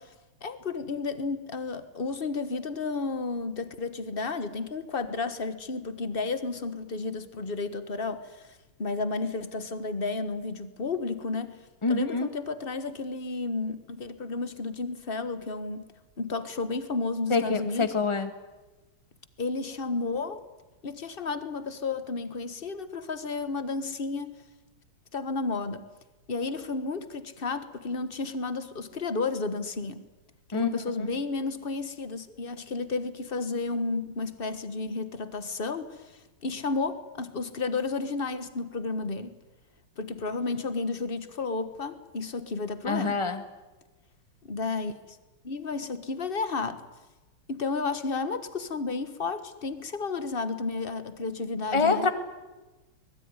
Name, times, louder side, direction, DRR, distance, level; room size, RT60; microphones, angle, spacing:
voice 1, 0.4-11.6 11.9-15.9 16.2-17.9 19.4-20.4 20.8-24.4 25.1-25.9 26.3-30.0 30.5-39.4 40.0-43.2 44.5-45.2 45.4-46.8 47.5-52.1, left 3 dB, 30° left, 11 dB, 1.3 m, -32 dB
voice 2, 11.8-12.3 17.3-18.3 30.5-31.1 42.9-43.4 51.7-52.1, left 4 dB, 15° left, 8 dB, 1.6 m, -26 dB
24.5 x 21.0 x 9.8 m, 1.1 s
omnidirectional pair, 2.4 m